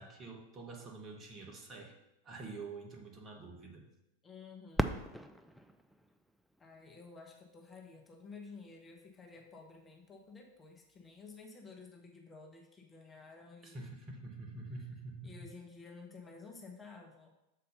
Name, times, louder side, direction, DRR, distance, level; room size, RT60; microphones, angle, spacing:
voice 1, 0.0-2.0 2.2-3.9 13.6-15.5, right 3 dB, 25° right, 1 dB, 1.3 m, -47 dB
voice 2, 4.2-5.0 6.6-13.9 14.8-17.3, left 4 dB, 20° left, 1 dB, 1.0 m, -53 dB
Fireworks, 4.7-7.5 8.2-8.3 9.0-9.4 11.3-11.5, right 1 dB, ahead, 0.4 m, -39 dB
6.7 x 4.1 x 5.4 m, 0.91 s
figure-of-eight pair, 90°, 0 cm